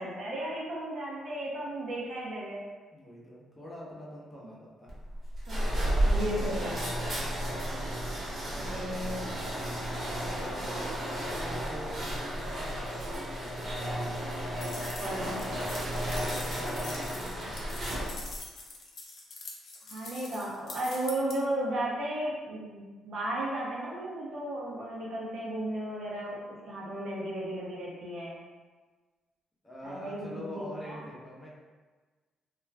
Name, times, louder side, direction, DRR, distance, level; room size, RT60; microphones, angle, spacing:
voice 1, 0.0-2.6 5.5-5.6 6.1-6.9 8.6-9.2 15.0-15.4 19.8-28.4 29.8-31.0, right 1 dB, 60° right, -5 dB, 0.8 m, -35 dB
voice 2, 2.9-5.0 8.2-9.8 10.3-14.0 15.9-17.6 29.6-31.5, equal, 15° left, -5 dB, 0.8 m, -45 dB
sound 1, 4.9-18.4, right 1 dB, 45° right, 1.1 m, -33 dB
sound 2, 14.6-21.4, left 3 dB, 55° left, 0.6 m, -44 dB
2.4 x 2.2 x 3.3 m, 1.4 s
cardioid pair, 90°, 0 cm